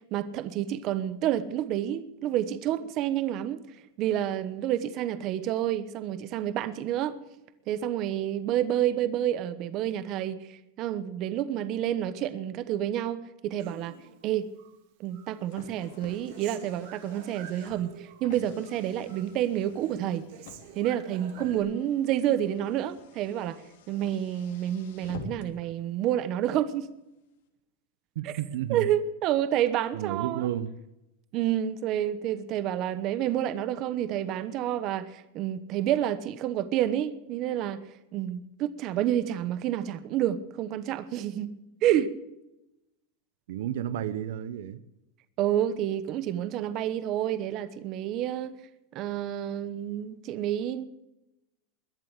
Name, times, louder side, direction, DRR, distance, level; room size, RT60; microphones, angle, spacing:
voice 1, 0.1-3.6 4.0-7.1 7.7-10.4 10.8-14.0 14.2-14.5 15.0-20.3 20.8-23.6 23.9-26.9 28.2-28.4 28.7-30.5 31.3-37.8 38.1-42.1 45.4-48.5 48.9-50.8, right 11 dB, 40° right, 1.1 m, -29 dB
Human voice, 13.6-14.8 15.1-18.3 18.6-19.3 19.6-21.6, right 9 dB, 60° right, 2.5 m, -49 dB
Car, 15.1-25.7, left 5 dB, 75° left, 3.1 m, -49 dB
voice 2, 28.1-28.9 29.9-30.7 43.5-44.8, right 11 dB, 75° right, 0.9 m, -32 dB
21.5 x 7.7 x 8.3 m
supercardioid pair, 155°, 0 cm